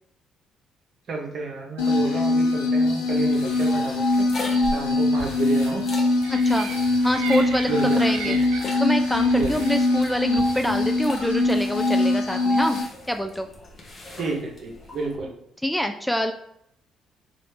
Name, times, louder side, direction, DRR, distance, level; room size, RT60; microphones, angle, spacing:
voice 1, 1.1-4.3 4.6-5.8 7.4-8.4 9.3-9.6 14.1-15.3, right 3 dB, 55° right, 0 dB, 0.8 m, -31 dB
sound 1, 1.8-12.8, left 2 dB, 85° left, 0.5 m, -22 dB
sound 2, 3.1-15.2, left 2 dB, 40° left, 0.8 m, -40 dB
sound 3, 6.2-11.7, right 6 dB, 80° right, 0.4 m, -38 dB
voice 2, 6.3-6.7 7.0-8.4 8.8-12.8 13.1-13.5 15.6-16.3, equal, ahead, 6 dB, 0.3 m, -25 dB
3.0 x 2.5 x 3.2 m, 0.76 s
hypercardioid pair, 50°, 0 cm